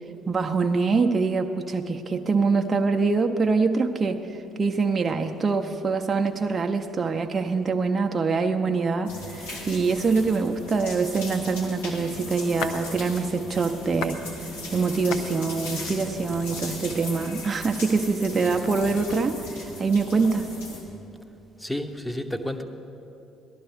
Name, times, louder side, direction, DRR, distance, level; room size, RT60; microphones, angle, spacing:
voice 1, 0.3-4.2 4.6-14.2 14.7-20.5, right 4 dB, 30° right, 4 dB, 0.6 m, -24 dB
sound 1, 9.0-20.8, left 2 dB, 85° left, 1.9 m, -37 dB
sound 2, 12.1-12.9 13.3-14.2 14.5-19.2, left 5 dB, 65° left, 0.6 m, -39 dB
voice 2, 21.6-22.6, left 1 dB, 5° left, 8 dB, 0.9 m, -31 dB
17.5 x 12.0 x 3.5 m, 2.8 s
hypercardioid pair, 50°, 0 cm